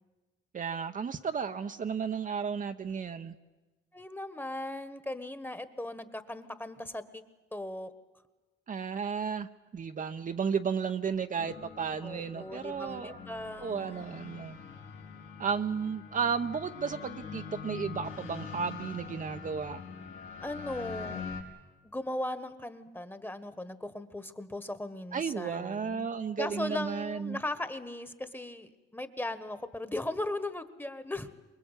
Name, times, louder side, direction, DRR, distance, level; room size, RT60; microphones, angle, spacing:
voice 1, 0.5-3.3 8.7-13.2 13.6-14.6 15.4-19.8 25.1-27.4, right 6 dB, 40° right, 7 dB, 0.9 m, -33 dB
voice 2, 3.9-7.2 7.5-7.9 12.0-14.1 20.4-21.2 21.9-26.1 26.4-31.3, left 1 dB, 10° left, 11 dB, 1.5 m, -38 dB
sound 1, 11.4-21.4, left 6 dB, 80° left, 3.6 m, -44 dB
24.0 x 21.0 x 8.3 m, 1.2 s
cardioid pair, 90°, 20 cm